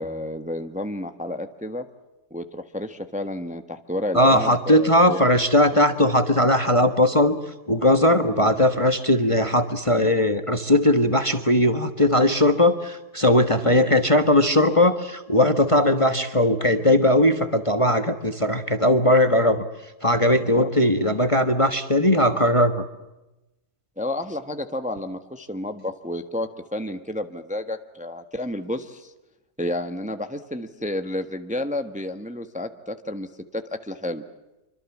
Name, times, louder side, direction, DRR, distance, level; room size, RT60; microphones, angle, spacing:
voice 1, 0.0-1.8 2.3-5.2 13.6-13.9 20.5-20.7 24.0-29.1 29.6-34.2, left 1 dB, 5° right, 8 dB, 1.2 m, -31 dB
voice 2, 4.1-7.4 7.7-19.6 20.0-22.8, left 1 dB, 20° left, 9 dB, 1.3 m, -19 dB
26.0 x 25.0 x 7.3 m, 1.0 s
omnidirectional pair, 1.7 m